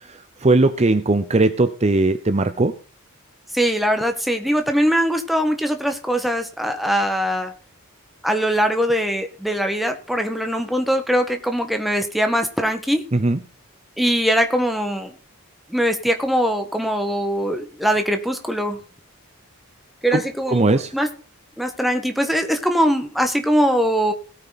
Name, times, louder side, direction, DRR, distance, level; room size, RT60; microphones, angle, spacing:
voice 1, 0.1-2.7 13.1-13.4 20.1-20.2 20.5-20.9, right 2 dB, 30° right, 10 dB, 0.7 m, -19 dB
voice 2, 3.5-7.5 8.2-13.0 14.0-15.1 15.7-18.8 20.0-21.1 21.6-24.1, equal, ahead, 5 dB, 1.6 m, -21 dB
17.5 x 9.3 x 4.1 m, 0.39 s
head